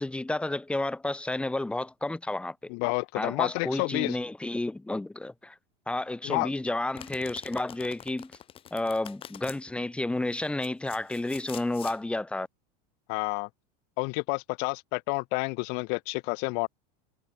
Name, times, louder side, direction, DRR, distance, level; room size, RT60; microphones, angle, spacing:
voice 1, 0.0-2.6 3.2-5.6 5.9-8.3 8.7-12.5, left 2 dB, 5° left, 4.1 m, -31 dB
voice 2, 2.7-4.2 6.2-6.5 13.1-13.5 14.0-16.7, left 34 dB, 50° left, 7.1 m, -29 dB
Domestic sounds home sounds, 6.9-9.6 10.3-12.0, left 10 dB, 25° left, 5.9 m, -45 dB
supercardioid pair, 165°, 21 cm